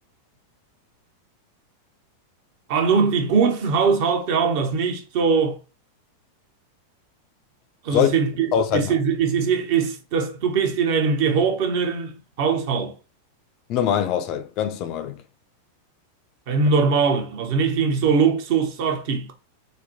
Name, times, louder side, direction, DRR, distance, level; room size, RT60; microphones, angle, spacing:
voice 1, 2.7-5.6 7.8-12.9 16.5-19.3, right 5 dB, 50° right, 0.7 m, -21 dB
voice 2, 8.5-9.0 13.7-15.2, left 8 dB, 40° left, 0.4 m, -23 dB
4.1 x 2.1 x 2.7 m
figure-of-eight pair, 90°, 0 cm